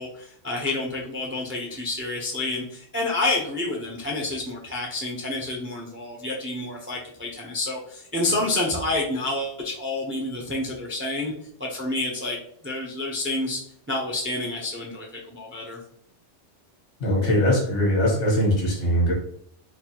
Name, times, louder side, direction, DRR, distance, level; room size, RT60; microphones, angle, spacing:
voice 1, 0.0-11.3 11.6-12.4 12.6-13.6 13.9-15.8, left 2 dB, 15° right, -2 dB, 0.4 m, -29 dB
voice 2, 17.0-19.1, equal, 70° left, -2 dB, 1.5 m, -21 dB
4.0 x 2.5 x 2.8 m, 0.64 s
omnidirectional pair, 1.2 m